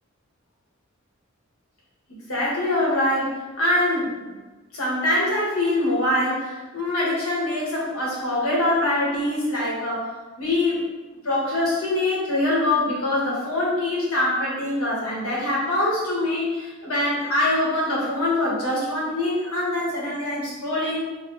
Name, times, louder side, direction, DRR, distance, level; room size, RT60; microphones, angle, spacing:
voice 1, 2.3-4.4 4.7-10.1 10.4-10.8 11.2-21.0, left 1 dB, 85° left, -5 dB, 1.0 m, -24 dB
2.7 x 2.6 x 3.0 m, 1.2 s
head